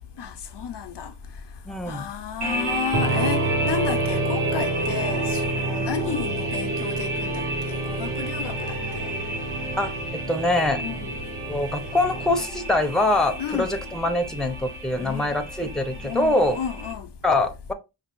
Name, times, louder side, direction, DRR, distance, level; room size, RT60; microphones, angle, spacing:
voice 1, 0.2-1.1 1.9-9.1 10.8-11.2 13.4-13.8 14.9-15.4 16.0-17.1, left 7 dB, 70° left, 0.6 m, -32 dB
voice 2, 1.7-2.1 9.8-10.8 11.5-16.6 17.2-17.7, left 2 dB, ahead, 0.6 m, -24 dB
sound 1, 2.4-16.9, right 2 dB, 70° right, 1.7 m, -33 dB
sound 2, 2.9-12.4, right 2 dB, 45° right, 0.8 m, -28 dB
5.2 x 2.7 x 3.0 m
wide cardioid pair, 85°, 43 cm